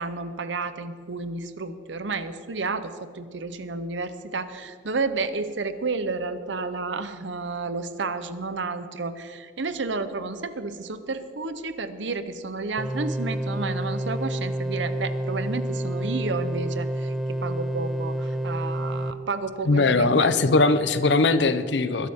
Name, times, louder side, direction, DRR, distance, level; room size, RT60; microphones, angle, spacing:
voice 1, 0.0-20.3, right 3 dB, 70° right, 11 dB, 0.8 m, -31 dB
sound 1, 12.8-19.1, right 1 dB, ahead, 0.6 m, -29 dB
voice 2, 19.7-22.1, left 3 dB, 65° left, 12 dB, 0.7 m, -20 dB
21.0 x 12.0 x 3.7 m, 2.3 s
head